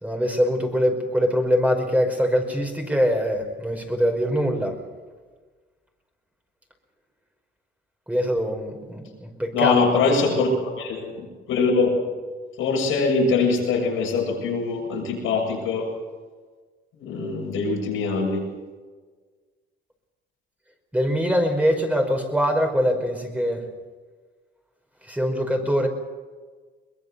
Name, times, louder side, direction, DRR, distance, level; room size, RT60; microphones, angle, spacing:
voice 1, 0.0-4.8 8.1-9.8 20.9-23.6 25.1-25.9, equal, 5° right, 3 dB, 5.1 m, -23 dB
voice 2, 9.5-11.9 12.6-15.9 17.0-18.4, left 4 dB, 90° left, -1 dB, 7.7 m, -23 dB
23.0 x 21.5 x 6.9 m, 1.4 s
cardioid pair, 90°, 20 cm